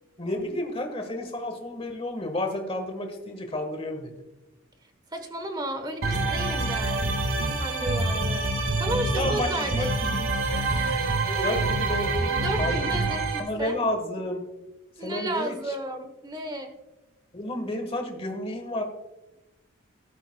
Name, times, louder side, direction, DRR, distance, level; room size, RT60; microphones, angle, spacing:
voice 1, 0.2-4.2 8.9-10.6 11.4-14.4 15.0-15.8 17.3-18.8, left 1 dB, 30° left, 4 dB, 1.3 m, -31 dB
voice 2, 5.1-7.0 7.6-8.5 8.8-10.1 11.3-11.6 12.3-13.2 13.6-13.8 15.0-16.7, right 1 dB, 20° right, 6 dB, 1.1 m, -33 dB
sound 1, 6.0-13.4, right 2 dB, 80° right, 1.6 m, -26 dB
14.5 x 12.5 x 2.2 m, 1.0 s
head